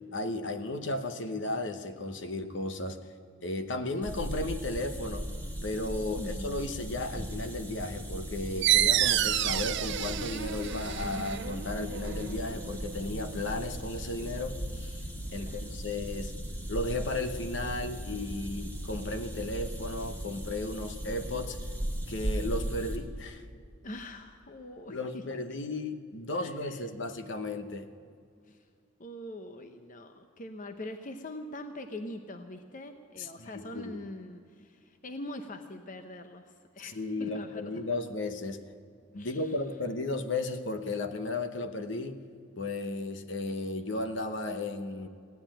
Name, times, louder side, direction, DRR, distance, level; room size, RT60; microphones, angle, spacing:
voice 1, 0.1-3.0 3.4-5.2 5.6-16.3 16.7-21.6 22.1-23.4 24.9-27.9 33.2-34.0 36.8-38.6 39.1-42.2 42.6-45.1, left 2 dB, 65° left, 7 dB, 1.0 m, -34 dB
sound 1, 4.0-23.0, right 1 dB, 10° left, 1.8 m, -38 dB
voice 2, 6.2-6.5 15.3-15.7 22.6-22.7 23.8-25.4 26.3-26.8 28.4-28.6 29.0-38.0 39.1-39.5, left 1 dB, 40° left, 7 dB, 0.8 m, -43 dB
sound 2, 8.6-13.9, right 12 dB, 60° right, 0.5 m, -30 dB
16.0 x 9.6 x 9.0 m, 2.3 s
head